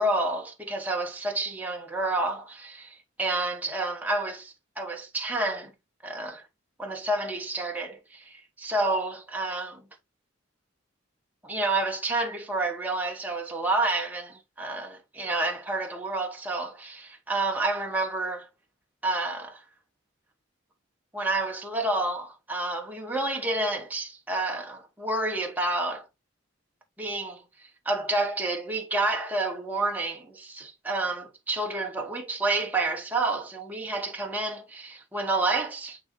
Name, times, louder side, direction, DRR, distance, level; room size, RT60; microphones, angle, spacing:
voice 1, 0.0-5.7 6.0-6.4 6.8-9.8 11.4-18.5 19.0-19.6 21.1-26.1 27.0-27.4 27.8-36.0, right 2 dB, 10° right, 1.0 m, -29 dB
8.9 x 3.9 x 3.0 m
head